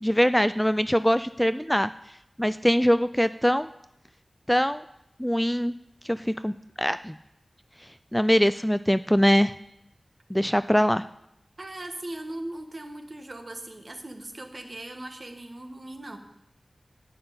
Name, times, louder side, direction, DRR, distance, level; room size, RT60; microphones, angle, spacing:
voice 1, 0.0-1.9 2.4-3.7 4.5-4.8 5.2-5.7 6.0-7.2 7.8-9.5 10.3-11.0, equal, 5° left, 13 dB, 0.3 m, -23 dB
voice 2, 11.6-16.2, right 1 dB, 50° right, 4 dB, 1.5 m, -39 dB
10.5 x 5.8 x 8.7 m, 0.81 s
wide cardioid pair, 50°, 0 cm